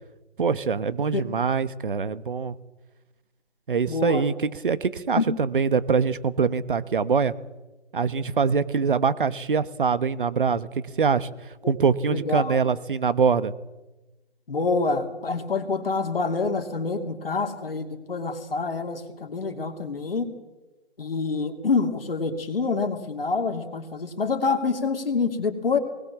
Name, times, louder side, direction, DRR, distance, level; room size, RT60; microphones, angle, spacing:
voice 1, 0.4-2.5 3.7-4.3 4.6-7.3 7.9-10.7 11.0-11.3 11.7-13.5, right 5 dB, 50° right, 15 dB, 1.2 m, -23 dB
voice 2, 3.9-4.2 5.2-5.3 12.1-12.6 14.5-20.3 21.0-25.8, left 4 dB, 55° left, 5 dB, 2.9 m, -26 dB
20.0 x 19.5 x 7.3 m, 1.1 s
figure-of-eight pair, 150°, 33 cm